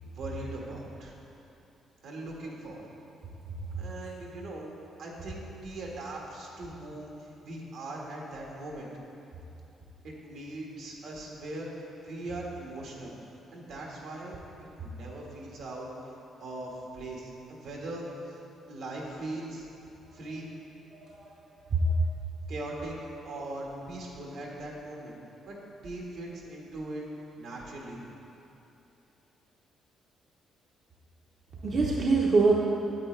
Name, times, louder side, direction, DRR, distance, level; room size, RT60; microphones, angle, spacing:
voice 1, 0.0-1.1 2.0-2.8 3.8-4.7 5.0-8.9 10.0-13.2 13.5-14.4 14.8-15.9 16.4-18.4 18.7-19.7 20.1-20.5 22.5-22.9 23.2-25.1 25.5-25.6 25.8-27.0 27.4-28.0, right 2 dB, 80° right, -2 dB, 1.6 m, -40 dB
voice 2, 20.9-21.3 21.7-22.1 31.6-32.5, right 3 dB, 50° right, -4 dB, 0.8 m, -24 dB
9.3 x 8.0 x 3.3 m, 2.9 s
cardioid pair, 90°, 0 cm